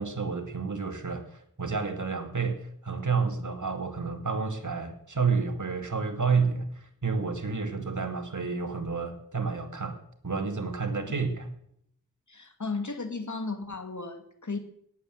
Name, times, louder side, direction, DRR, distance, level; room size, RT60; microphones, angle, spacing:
voice 1, 0.0-10.0 10.2-11.5, right 5 dB, 60° right, 5 dB, 2.4 m, -30 dB
voice 2, 12.3-14.6, left 3 dB, 60° left, 7 dB, 2.3 m, -35 dB
18.0 x 8.5 x 7.8 m, 0.70 s
wide cardioid pair, 50°, 34 cm